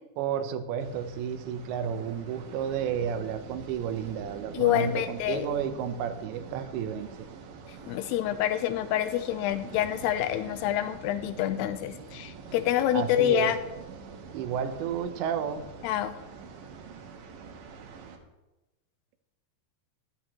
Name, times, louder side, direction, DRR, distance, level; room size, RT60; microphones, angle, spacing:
voice 1, 0.2-7.3 12.9-13.5 14.3-15.6, right 8 dB, 90° right, 9 dB, 3.2 m, -31 dB
sound 1, 0.8-18.2, right 5 dB, 65° right, 2.4 m, -45 dB
voice 2, 4.5-5.5 7.9-13.6 15.8-16.1, left 12 dB, 80° left, 11 dB, 2.6 m, -27 dB
15.5 x 12.5 x 3.1 m, 1.0 s
omnidirectional pair, 5.0 m